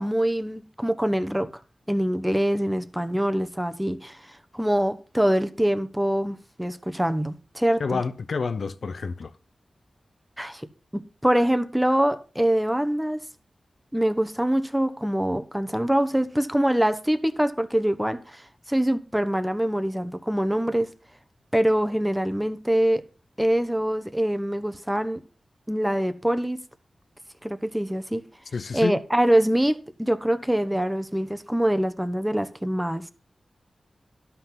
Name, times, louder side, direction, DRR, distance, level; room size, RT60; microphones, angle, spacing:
voice 1, 0.0-1.5 1.9-8.0 10.4-10.7 10.9-13.2 13.9-20.9 21.5-23.0 23.4-25.2 25.7-26.6 27.4-28.3 28.7-33.1, right 1 dB, 5° right, 1.1 m, -24 dB
voice 2, 7.8-9.3 28.5-29.0, left 4 dB, 70° left, 0.8 m, -29 dB
12.0 x 5.8 x 5.9 m
cardioid pair, 65°, 0 cm